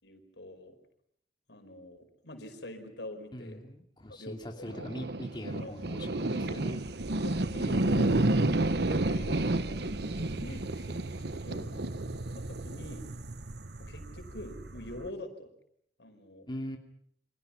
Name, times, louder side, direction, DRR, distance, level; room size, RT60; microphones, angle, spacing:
voice 1, 0.0-0.8 1.5-3.6 4.1-4.9 5.5-5.7 6.0-6.1 6.8-6.9 7.2-8.2 8.9-11.7 12.4-13.1 13.8-15.5 16.0-16.5, left 1 dB, 75° left, 7 dB, 5.1 m, -45 dB
voice 2, 3.3-6.8 11.5-12.2 16.5-16.8, equal, 25° left, 2 dB, 2.6 m, -42 dB
sound 1, 4.7-15.1, right 2 dB, 65° right, 1.2 m, -31 dB
29.5 x 26.0 x 6.0 m, 0.67 s
head